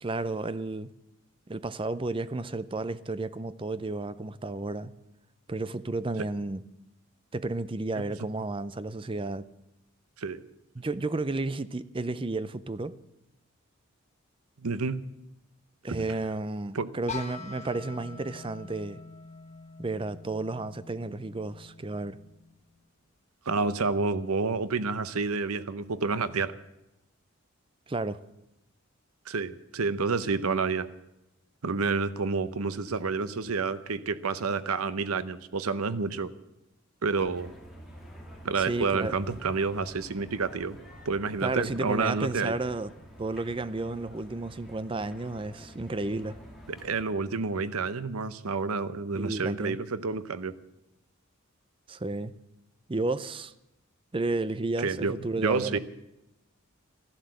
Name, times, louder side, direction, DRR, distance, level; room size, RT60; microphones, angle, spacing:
voice 1, 0.0-0.9 1.5-4.9 5.5-6.6 7.3-9.5 10.8-13.0 15.8-19.0 19.8-22.2 27.9-28.2 38.6-39.2 41.4-42.9 43.2-46.4 49.1-49.8 51.9-52.3 52.9-53.5 54.1-55.8, right 2 dB, 25° right, 0.5 m, -32 dB
voice 2, 14.6-15.0 15.9-16.0 16.7-16.9 23.5-26.6 29.3-30.9 31.6-36.3 37.0-37.5 38.4-40.8 41.0-42.5 46.8-50.5 54.8-55.2 55.4-55.8, right 4 dB, 85° right, 0.8 m, -29 dB
sound 1, 17.1-22.9, left 5 dB, 30° left, 1.1 m, -45 dB
sound 2, 37.2-47.0, equal, ahead, 2.3 m, -49 dB
14.0 x 11.5 x 7.7 m
head